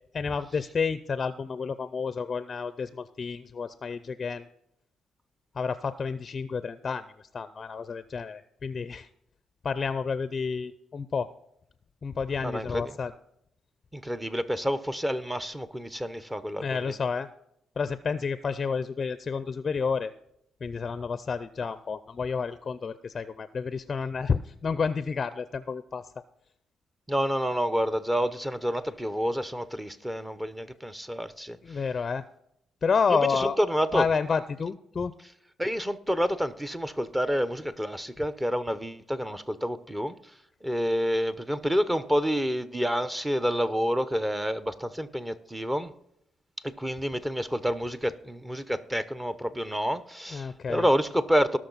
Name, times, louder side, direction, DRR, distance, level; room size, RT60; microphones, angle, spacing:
voice 1, 0.1-4.5 5.5-7.1 7.3-9.1 9.6-11.3 12.0-13.1 16.6-17.3 17.8-20.1 20.6-26.1 31.6-32.2 32.8-33.6 33.9-35.1 50.3-50.9, left 5 dB, 40° left, 13 dB, 0.5 m, -30 dB
voice 2, 12.4-13.0 13.9-17.0 27.1-31.6 33.1-34.0 35.6-40.1 40.6-45.9 46.6-51.6, equal, 10° right, 13 dB, 0.8 m, -28 dB
17.5 x 6.2 x 4.0 m, 0.76 s
cardioid pair, 90°, 0 cm